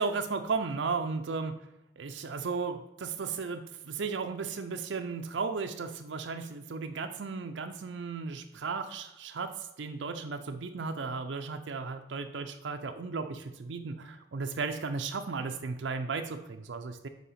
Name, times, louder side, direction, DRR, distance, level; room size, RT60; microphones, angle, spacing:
voice 1, 0.0-1.5 2.0-17.1, right 4 dB, 70° right, 6 dB, 0.5 m, -35 dB
5.6 x 4.5 x 5.6 m, 0.95 s
head